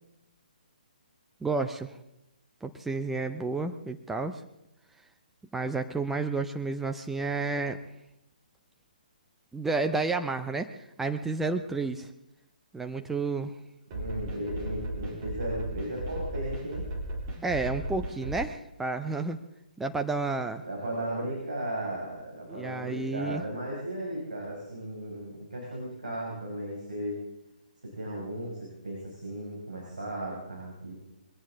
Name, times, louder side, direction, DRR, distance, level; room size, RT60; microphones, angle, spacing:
voice 1, 1.4-1.9 2.6-4.4 5.5-7.8 9.5-12.1 12.7-13.5 17.4-19.4 19.8-20.6 22.5-23.4, right 3 dB, 5° right, 6 dB, 0.5 m, -31 dB
sound 1, 13.9-18.4, right 1 dB, 25° right, 3.4 m, -36 dB
voice 2, 13.9-16.8 20.6-27.2 27.8-31.0, right 1 dB, 70° right, -4 dB, 5.6 m, -36 dB
21.5 x 17.0 x 3.7 m, 0.89 s
figure-of-eight pair, 130°, 5 cm